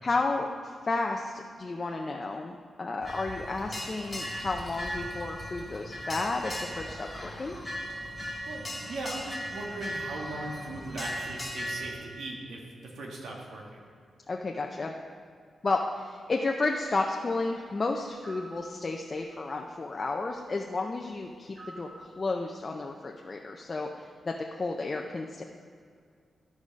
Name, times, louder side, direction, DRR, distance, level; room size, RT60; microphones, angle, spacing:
voice 1, 0.0-7.6 14.3-14.9 15.6-21.9 22.2-25.4, left 3 dB, 30° left, 1 dB, 0.5 m, -32 dB
sound 1, 3.0-11.9, equal, 10° left, 1.6 m, -38 dB
voice 2, 8.5-13.8, right 2 dB, 90° right, -1 dB, 1.5 m, -39 dB
sound 2, 18.2-18.6 21.6-22.0, right 2 dB, 40° right, 2.7 m, -46 dB
13.0 x 4.8 x 5.3 m, 2.2 s
wide cardioid pair, 140°, 0 cm